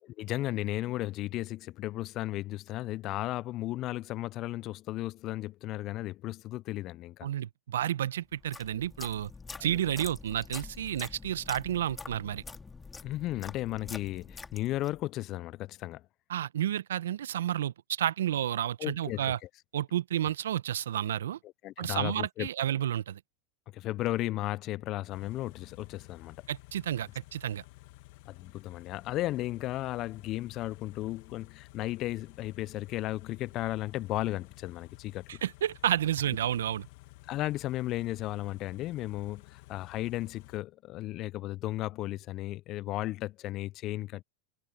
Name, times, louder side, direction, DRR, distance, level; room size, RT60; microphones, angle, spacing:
voice 1, 0.1-7.3 9.6-9.8 13.0-16.0 18.8-19.3 21.6-22.5 23.7-26.4 28.3-35.2 37.3-44.2, left 16 dB, 45° left, 0.4 m, -35 dB
voice 2, 7.2-9.3 9.6-12.4 16.3-19.4 19.7-21.4 21.8-23.2 26.5-27.6 35.3-36.9, right 11 dB, 80° right, 0.8 m, -31 dB
sound 1, 8.3-15.0, left 4 dB, 15° left, 2.4 m, -46 dB
Car / Idling, 25.1-40.6, left 22 dB, 60° left, 1.1 m, -53 dB
hypercardioid pair, 100°, 0 cm